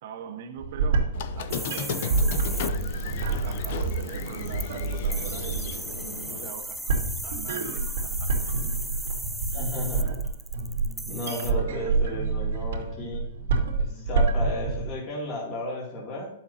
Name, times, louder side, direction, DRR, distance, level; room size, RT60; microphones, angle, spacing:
voice 1, 0.0-7.0 7.2-8.6, right 8 dB, 45° right, 0.7 m, -42 dB
sound 1, 0.6-14.9, right 4 dB, 70° right, 2.8 m, -28 dB
Squeak, 1.1-6.5, left 7 dB, 45° left, 0.6 m, -36 dB
sound 2, 1.5-11.5, right 1 dB, ahead, 0.3 m, -37 dB
voice 2, 9.5-10.3 11.1-13.2 13.8-16.3, left 1 dB, 25° left, 2.5 m, -33 dB
11.5 x 7.3 x 2.8 m
supercardioid pair, 175°, 0 cm